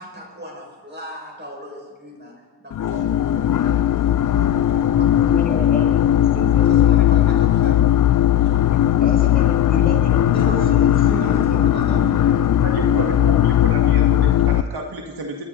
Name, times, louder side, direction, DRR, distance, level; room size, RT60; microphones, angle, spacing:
voice 1, 0.0-5.2 6.7-7.9 8.3-8.9 10.3-12.3, equal, 25° right, -1 dB, 5.8 m, -36 dB
sound 1, 2.7-14.6, left 11 dB, 45° left, 0.5 m, -17 dB
voice 2, 5.2-6.8 9.0-11.9, left 2 dB, 20° left, -1 dB, 2.0 m, -32 dB
voice 3, 12.6-15.4, right 1 dB, 60° right, 1 dB, 1.8 m, -31 dB
29.0 x 11.0 x 4.0 m, 1.5 s
wide cardioid pair, 115°, 42 cm